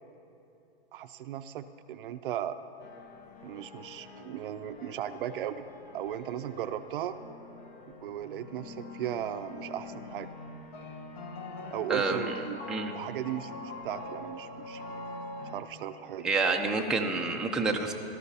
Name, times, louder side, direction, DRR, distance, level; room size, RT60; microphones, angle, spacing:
voice 1, 0.9-2.6 3.4-5.6 5.9-7.2 8.0-10.3 11.7-12.6 12.9-14.8 15.4-16.3, right 11 dB, 55° right, 10 dB, 0.6 m, -37 dB
sound 1, 2.8-15.6, left 2 dB, 45° left, 1.2 m, -44 dB
voice 2, 11.9-12.3 12.7-12.9 16.2-17.9, right 3 dB, ahead, 1 dB, 0.5 m, -28 dB
18.5 x 12.5 x 2.8 m, 2.9 s
hypercardioid pair, 115°, 31 cm